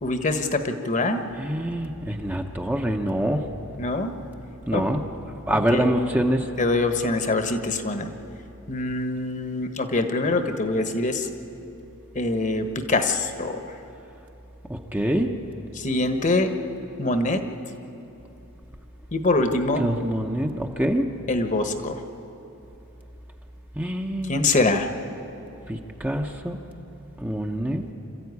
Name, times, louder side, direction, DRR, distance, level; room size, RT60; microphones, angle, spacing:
voice 1, 0.0-1.2 3.8-4.1 4.7-4.8 5.5-5.8 6.6-8.1 8.7-11.3 12.1-13.6 15.8-16.5 17.0-17.4 19.1-19.8 21.3-22.0 24.3-24.9, left 2 dB, 35° left, 7 dB, 1.2 m, -24 dB
voice 2, 1.4-3.5 4.7-5.0 5.5-6.5 14.7-15.4 19.8-21.1 23.8-24.4 25.7-26.6 27.2-27.9, right 1 dB, 10° right, 3 dB, 0.9 m, -25 dB
26.0 x 14.0 x 9.6 m, 2.9 s
head